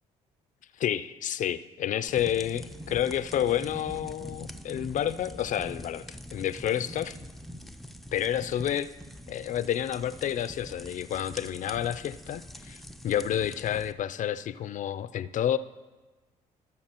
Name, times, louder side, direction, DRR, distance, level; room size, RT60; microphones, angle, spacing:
voice 1, 0.8-6.0 6.3-7.2 8.1-8.9 9.3-15.6, left 10 dB, 50° left, 14 dB, 0.5 m, -29 dB
sound 1, 2.1-13.9, equal, ahead, 0.5 m, -44 dB
17.0 x 6.0 x 3.0 m, 1.2 s
supercardioid pair, 65°, 17 cm